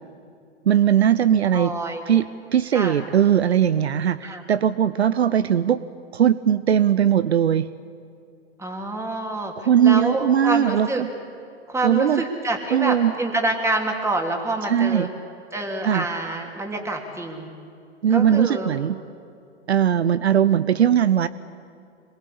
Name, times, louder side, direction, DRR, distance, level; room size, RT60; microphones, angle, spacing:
voice 1, 0.7-1.7 2.1-5.8 6.1-7.7 9.7-11.1 11.8-12.2 12.7-13.1 14.7-15.1 15.8-16.0 18.0-19.0 19.7-21.3, right 9 dB, 70° right, 16 dB, 0.8 m, -19 dB
voice 2, 1.5-2.0 2.7-3.0 4.2-4.4 8.6-9.5 9.8-11.0 11.7-15.1 15.5-17.5 18.1-18.7, right 2 dB, 10° right, 2 dB, 3.4 m, -27 dB
26.5 x 22.0 x 8.7 m, 2.5 s
figure-of-eight pair, 100°, 34 cm